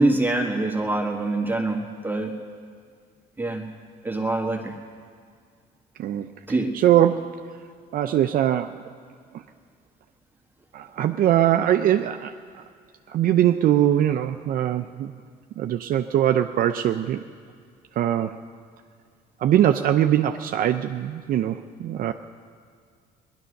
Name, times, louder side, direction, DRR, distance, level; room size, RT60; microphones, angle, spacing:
voice 1, 0.0-2.3 3.4-3.6 4.0-4.7 6.5-6.7, right 2 dB, 10° right, 1 dB, 1.6 m, -24 dB
voice 2, 6.0-6.3 6.7-7.4 7.9-8.8 9.3-9.4 10.7-12.3 13.1-15.1 15.6-17.3 18.0-18.4 19.4-22.1, right 11 dB, 60° right, 7 dB, 0.5 m, -22 dB
19.0 x 11.5 x 6.5 m, 2.1 s
cardioid pair, 110°, 17 cm